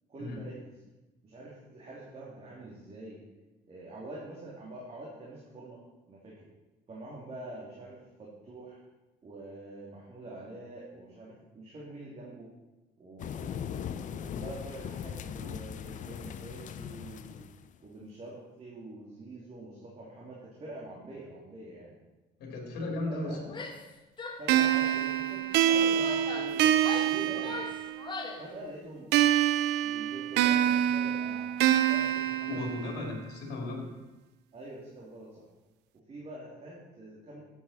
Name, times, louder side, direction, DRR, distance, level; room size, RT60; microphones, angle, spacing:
voice 1, 0.1-0.7 1.2-3.2 3.7-5.8 6.1-6.3 6.9-8.8 9.2-12.5 13.0-17.4 17.8-22.0 23.1-23.4 24.4-27.6 28.4-29.1 29.8-32.8 34.5-35.4 36.1-37.4, right 2 dB, 35° right, -5 dB, 2.8 m, -45 dB
sound 1, 13.2-17.7, left 9 dB, 50° left, 0.5 m, -39 dB
voice 2, 22.4-23.5 32.5-33.9, left 2 dB, 70° left, 1 dB, 2.8 m, -36 dB
Female speech woman speaking / Yell, 23.5-23.9 24.2-25.0 25.7-28.5, left 4 dB, 30° left, 1.3 m, -40 dB
sound 2, 24.5-28.1 29.1-33.1, right 11 dB, 90° right, 0.6 m, -26 dB
12.5 x 8.4 x 4.3 m, 1.1 s
cardioid pair, 110°, 17 cm